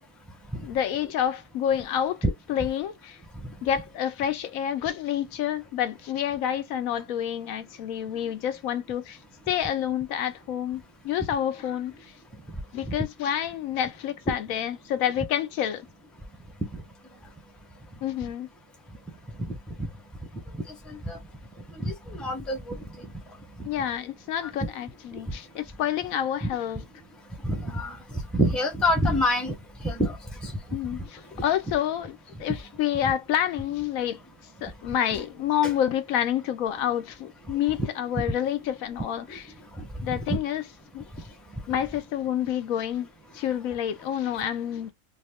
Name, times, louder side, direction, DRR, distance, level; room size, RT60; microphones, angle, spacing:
voice 1, 0.6-3.2 3.6-9.2 9.5-11.9 12.7-15.9 18.0-18.5 23.6-26.8 30.7-34.2 34.6-39.5 40.0-40.6 40.9-41.0 41.7-43.1 43.3-44.9, left 10 dB, 90° left, 1.1 m, -28 dB
voice 2, 21.8-22.7 26.4-26.5 27.4-28.0 28.3-29.5 29.8-30.2 30.4-30.5 40.3-40.4, equal, ahead, 0.6 m, -25 dB
2.6 x 2.4 x 3.5 m
omnidirectional pair, 1.4 m